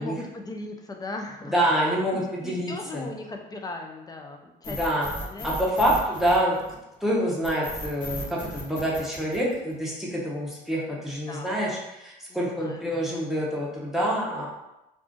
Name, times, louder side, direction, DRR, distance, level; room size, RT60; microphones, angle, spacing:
voice 1, 0.0-1.6 2.1-4.8 5.2-5.6 11.3-11.6 12.3-12.9 14.0-14.4, left 2 dB, 25° left, 3 dB, 0.3 m, -38 dB
voice 2, 1.5-3.1 4.7-5.1 5.4-6.6 7.0-14.5, equal, ahead, -4 dB, 0.7 m, -26 dB
sound 1, 4.6-6.9 7.4-9.9, left 2 dB, 50° left, 1.0 m, -36 dB
2.4 x 2.4 x 3.7 m, 0.94 s
cardioid pair, 110°, 17 cm